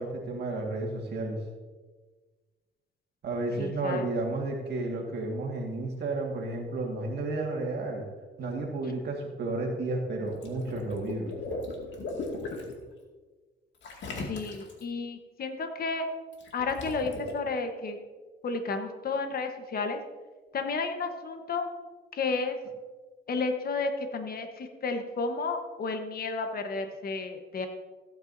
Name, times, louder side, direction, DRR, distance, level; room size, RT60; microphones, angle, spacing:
voice 1, 0.0-1.4 3.2-8.0 8.4-11.4, right 2 dB, 60° right, 0 dB, 1.9 m, -32 dB
voice 2, 3.6-4.1 14.1-16.0 16.5-18.0 18.4-20.0 20.5-21.6 22.1-22.6 23.3-27.7, left 4 dB, 50° left, 6 dB, 1.2 m, -32 dB
Water / Liquid, 10.2-12.7 13.8-14.8 16.3-17.3, left 3 dB, 65° left, 2.2 m, -37 dB
15.5 x 9.0 x 2.7 m, 1.3 s
cardioid pair, 90°, 20 cm